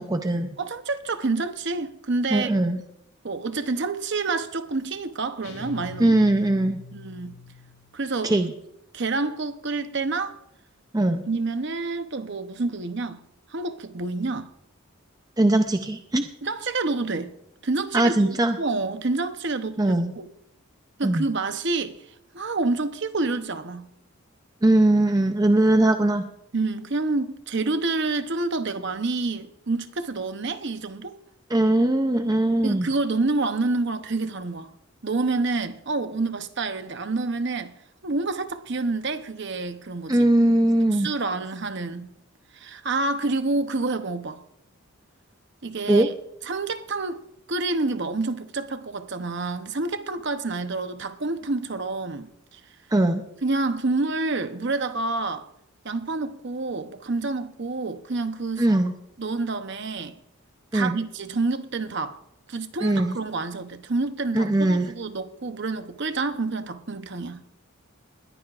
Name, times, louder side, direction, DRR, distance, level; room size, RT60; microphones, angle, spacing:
voice 1, 0.0-0.5 2.3-2.8 6.0-6.8 8.2-8.5 10.9-11.2 15.4-16.3 17.9-18.6 19.8-20.1 21.0-21.2 24.6-26.2 31.5-32.9 40.1-41.1 45.9-46.1 52.9-53.2 58.6-58.9 60.7-61.0 62.8-63.2 64.3-64.9, right 1 dB, 15° right, 0.5 m, -20 dB
voice 2, 0.6-2.5 3.2-6.1 6.9-7.3 7.9-8.4 8.9-10.4 11.3-13.2 13.5-14.5 16.4-17.3 17.6-20.3 21.0-22.0 22.3-23.9 26.5-31.2 32.6-34.7 35.0-37.7 38.0-40.3 40.8-42.1 42.5-44.4 45.6-46.1 46.4-47.2 47.5-52.6 53.4-55.5 55.8-58.7 59.2-60.2 60.7-62.2 62.5-67.4, right 3 dB, 55° right, 0.8 m, -28 dB
sound 1, 5.4-8.0, left 3 dB, 70° left, 2.3 m, -42 dB
21.0 x 14.5 x 2.5 m
head